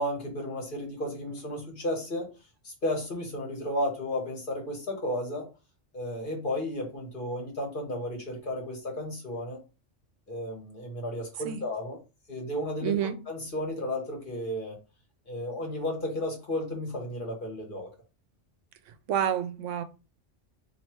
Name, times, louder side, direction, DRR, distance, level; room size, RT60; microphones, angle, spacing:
voice 1, 0.0-2.3 2.6-5.5 5.9-9.6 10.3-12.0 12.3-14.8 15.3-17.9, left 1 dB, 45° left, 1.4 m, -33 dB
voice 2, 12.8-13.2 19.1-19.8, right 9 dB, 85° right, 0.9 m, -28 dB
3.1 x 2.8 x 4.4 m
omnidirectional pair, 1.2 m